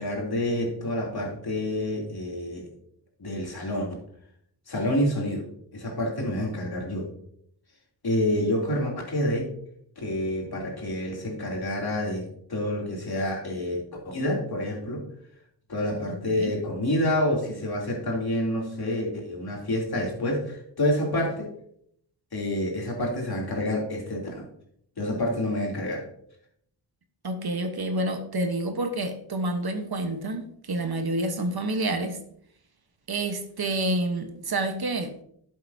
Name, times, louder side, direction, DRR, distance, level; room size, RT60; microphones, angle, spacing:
voice 1, 0.0-2.7 3.2-4.0 4.7-7.1 8.0-9.5 10.0-15.1 15.7-21.5 22.3-24.5 25.0-26.0, left 1 dB, 55° left, -1 dB, 3.2 m, -28 dB
voice 2, 27.2-32.2 33.1-35.1, right 2 dB, 55° right, 7 dB, 1.3 m, -28 dB
11.5 x 7.9 x 2.8 m, 0.68 s
cardioid pair, 65°, 45 cm